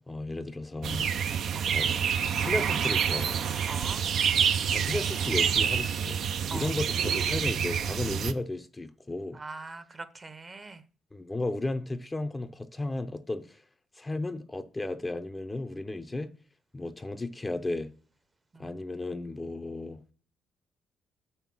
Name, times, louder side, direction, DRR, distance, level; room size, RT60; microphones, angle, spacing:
voice 1, 0.1-1.1 1.6-3.4 4.7-9.4 11.1-13.6 13.9-16.3 16.7-17.9 18.6-20.0, left 2 dB, 15° left, 0.6 m, -34 dB
sound 1, 0.8-8.3, right 7 dB, 70° right, 0.6 m, -27 dB
voice 2, 3.7-4.0 6.5-6.7 9.3-10.8 18.5-18.8, right 3 dB, 25° right, 0.8 m, -42 dB
6.8 x 5.6 x 6.0 m
cardioid pair, 90°, 0 cm